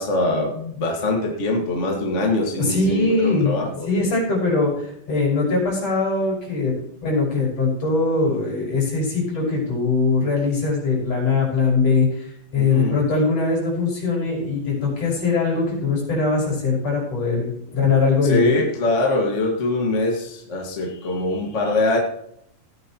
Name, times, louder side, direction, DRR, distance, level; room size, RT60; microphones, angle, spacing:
voice 1, 0.0-3.9 12.6-13.0 18.2-22.0, left 2 dB, 30° left, 0 dB, 1.4 m, -23 dB
voice 2, 2.6-3.6 3.9-6.7 7.0-12.3 12.5-18.6, left 3 dB, 45° left, -3 dB, 6.2 m, -21 dB
17.0 x 9.4 x 3.0 m, 0.70 s
omnidirectional pair, 4.0 m